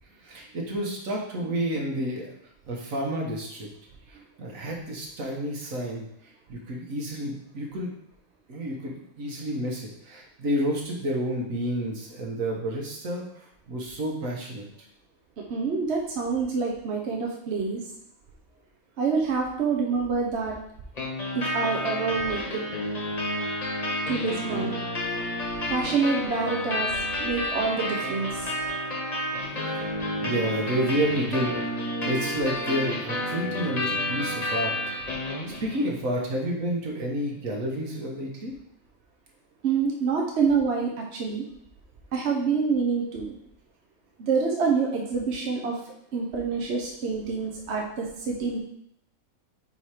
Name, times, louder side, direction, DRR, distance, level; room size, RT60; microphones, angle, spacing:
voice 1, 0.2-2.3 2.7-3.7 4.1-6.1 6.5-7.9 8.5-14.7 29.6-29.8 30.2-31.6 32.0-34.7 35.6-38.5, equal, 75° right, -1 dB, 1.6 m, -30 dB
voice 2, 15.5-17.8 19.0-20.6 21.3-22.6 24.1-24.7 25.5-28.5 39.6-41.4 42.1-43.3 44.2-45.8 46.1-48.6, right 5 dB, 55° right, 0 dB, 1.0 m, -27 dB
sound 1, 21.0-35.9, left 1 dB, 30° left, 1.3 m, -30 dB
4.7 x 4.4 x 4.8 m, 0.72 s
omnidirectional pair, 1.4 m